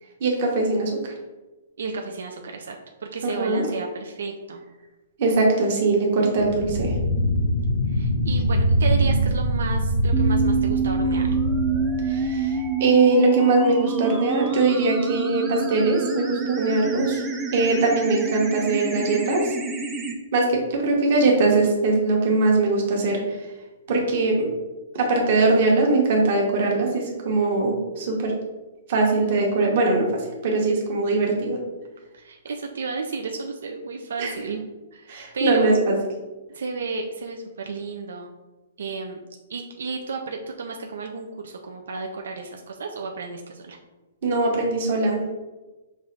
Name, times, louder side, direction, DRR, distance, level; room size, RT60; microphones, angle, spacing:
voice 1, 0.2-1.1 3.2-3.7 5.2-7.0 12.1-12.5 12.8-17.2 17.5-19.5 20.3-23.4 23.9-24.5 24.9-28.3 28.9-31.6 34.2-34.3 35.1-36.0 44.2-45.2, right 3 dB, 40° right, -1 dB, 1.0 m, -21 dB
voice 2, 1.8-4.6 7.9-11.3 32.1-34.6 34.9-35.8 36.5-38.3 38.8-39.2 39.5-43.8, right 4 dB, 80° right, 2 dB, 0.4 m, -32 dB
sound 1, 6.4-12.8, right 1 dB, 80° left, 0.8 m, -23 dB
sound 2, 10.1-20.1, right 3 dB, 10° right, 0.3 m, -27 dB
5.2 x 2.5 x 3.2 m, 1.1 s
hypercardioid pair, 175°, 0 cm